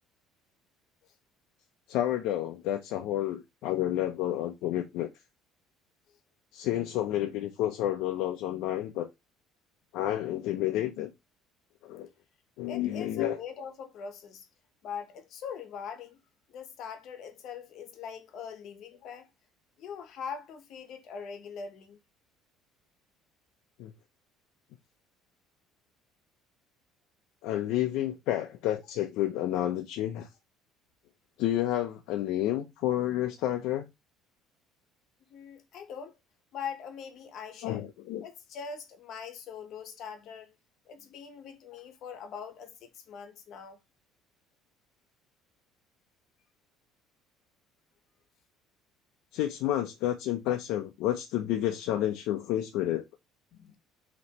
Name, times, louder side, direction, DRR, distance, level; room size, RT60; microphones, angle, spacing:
voice 1, 1.9-5.1 6.5-9.1 9.9-11.1 11.8-12.1 12.6-13.4 23.8-23.9 27.4-30.3 31.4-33.8 37.6-38.2 49.3-53.1, left 13 dB, 70° left, 0.6 m, -30 dB
voice 2, 12.7-14.5 14.8-16.2 16.5-19.3 19.8-22.0 35.3-36.2 36.5-37.8 38.2-40.5 40.9-43.8 53.5-53.8, left 6 dB, 50° left, 0.9 m, -42 dB
5.2 x 3.0 x 2.9 m
cardioid pair, 160°, 0 cm